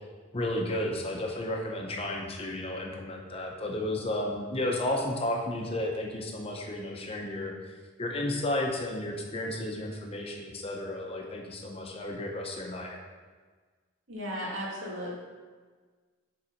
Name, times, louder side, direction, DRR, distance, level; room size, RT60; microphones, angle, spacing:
voice 1, 0.3-7.5 8.0-13.0, left 1 dB, 30° left, 1 dB, 0.8 m, -33 dB
voice 2, 14.1-15.1, equal, 80° right, -4 dB, 1.9 m, -35 dB
7.1 x 4.0 x 5.1 m, 1.4 s
head